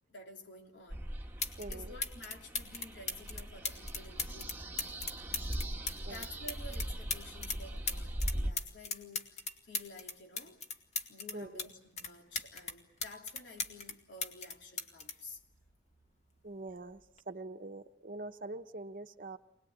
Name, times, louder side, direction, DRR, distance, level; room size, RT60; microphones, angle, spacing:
voice 1, 0.1-1.0 1.7-4.6 6.0-10.6 11.1-15.4, left 2 dB, 80° left, 3.3 m, -51 dB
sound 1, 0.9-1.0 1.4-1.8 2.0-7.6 7.9-11.7 12.0-13.9 14.2-16.0 17.0-17.2, left 4 dB, 40° left, 2.0 m, -38 dB
sound 2, 0.9-8.5, right 1 dB, 10° right, 1.4 m, -40 dB
voice 2, 1.6-1.9 6.1-6.2 11.3-11.7 16.4-17.0 17.3-19.4, right 2 dB, 50° right, 1.0 m, -44 dB
25.5 x 19.5 x 8.9 m
head